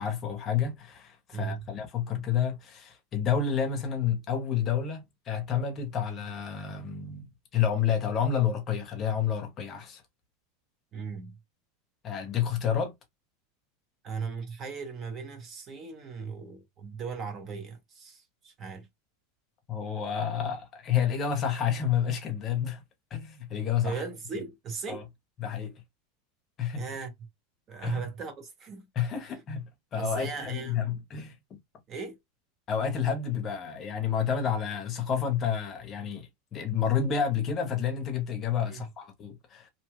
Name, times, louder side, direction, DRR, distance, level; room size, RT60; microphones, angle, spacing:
voice 1, 0.0-10.0 12.0-12.9 19.7-22.8 23.1-24.0 24.9-25.0 25.4-25.7 26.6-26.8 27.8-28.0 29.0-29.7 29.9-31.6 32.7-39.7, left 8 dB, 25° left, 0.8 m, -29 dB
voice 2, 1.3-1.7 10.9-11.4 14.0-18.9 23.8-25.1 26.8-27.1 27.7-28.9 30.0-30.8 31.9-32.2 38.7-38.9, right 5 dB, 25° right, 0.7 m, -37 dB
2.7 x 2.3 x 3.0 m
supercardioid pair, 165°, 0 cm